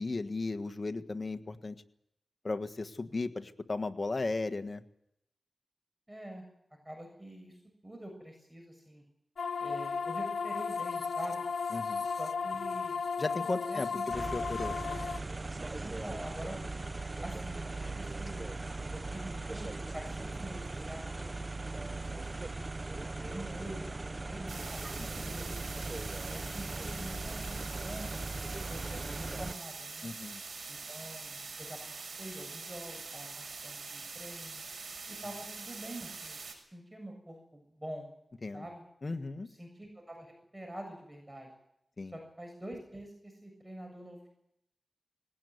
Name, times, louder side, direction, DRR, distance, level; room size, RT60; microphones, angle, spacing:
voice 1, 0.0-1.7 2.4-4.8 11.7-12.0 13.2-14.7 25.0-25.3 30.0-30.4 38.4-38.6 39.0-39.5 42.0-42.1, left 3 dB, 50° left, 8 dB, 1.6 m, -36 dB
voice 2, 6.1-6.4 6.8-7.6 7.8-9.0 9.6-11.5 12.1-13.0 13.5-14.0 15.8-16.7 17.2-18.5 18.9-21.4 21.7-22.7 23.2-25.6 26.1-28.1 28.7-30.1 30.7-34.7 35.1-38.1 38.5-38.8 39.4-41.5 42.1-44.3, right 1 dB, 15° right, 3 dB, 7.4 m, -46 dB
sound 1, 9.4-15.2, left 5 dB, 85° left, 0.9 m, -35 dB
sound 2, 14.1-29.6, right 2 dB, 35° right, 1.0 m, -39 dB
sound 3, 24.5-36.5, right 4 dB, 75° right, 6.2 m, -44 dB
20.5 x 17.5 x 9.6 m, 0.79 s
cardioid pair, 50°, 0 cm